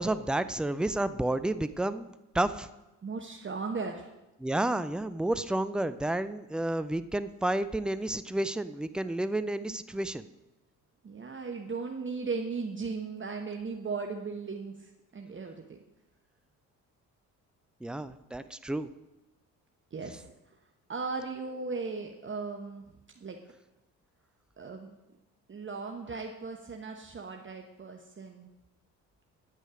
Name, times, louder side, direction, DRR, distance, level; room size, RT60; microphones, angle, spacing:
voice 1, 0.0-2.7 4.4-10.3 17.8-18.9, right 1 dB, ahead, 13 dB, 0.3 m, -31 dB
voice 2, 3.0-4.1 9.6-9.8 11.0-15.8 19.9-20.3 20.9-22.8 23.2-23.4 24.6-24.9 25.5-28.5, right 4 dB, 25° right, 3 dB, 1.1 m, -37 dB
10.0 x 9.0 x 5.0 m, 1.0 s
figure-of-eight pair, 50°, 46 cm